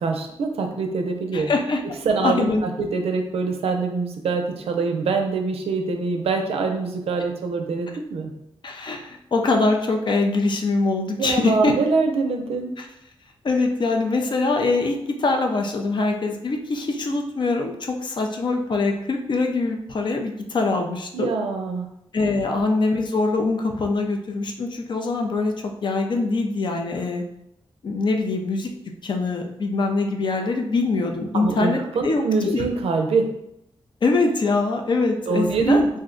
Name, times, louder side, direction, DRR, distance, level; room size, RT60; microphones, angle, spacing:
voice 1, 0.0-1.5 1.8-8.3 11.2-12.7 21.1-21.9 31.3-33.3 35.3-35.8, right 4 dB, 85° right, 4 dB, 0.4 m, -24 dB
voice 2, 1.3-1.8 2.2-2.6 8.6-11.8 12.8-12.9 13.4-21.3 22.1-27.2 27.8-28.7 29.0-32.7 34.0-35.9, left 3 dB, 50° left, 3 dB, 0.4 m, -23 dB
2.5 x 2.1 x 3.7 m, 0.80 s
wide cardioid pair, 95°, 10 cm